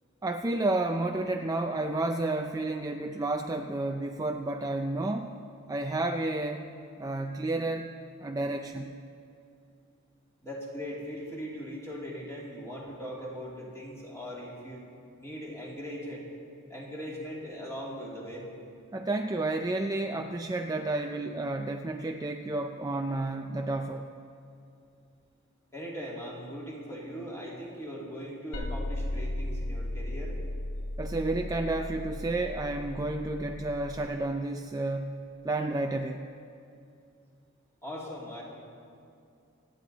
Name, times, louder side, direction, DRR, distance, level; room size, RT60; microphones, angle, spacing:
voice 1, 0.2-5.3 5.7-6.7 7.0-7.9 8.2-9.0 18.9-24.1 31.0-36.2, right 2 dB, 15° right, 4 dB, 0.4 m, -31 dB
voice 2, 10.4-14.8 15.2-16.2 16.7-18.4 25.7-30.4 37.8-38.4, equal, 15° left, -4 dB, 2.6 m, -40 dB
sound 1, 28.5-34.1, left 1 dB, 60° left, 1.2 m, -36 dB
26.5 x 9.4 x 4.1 m, 2.5 s
head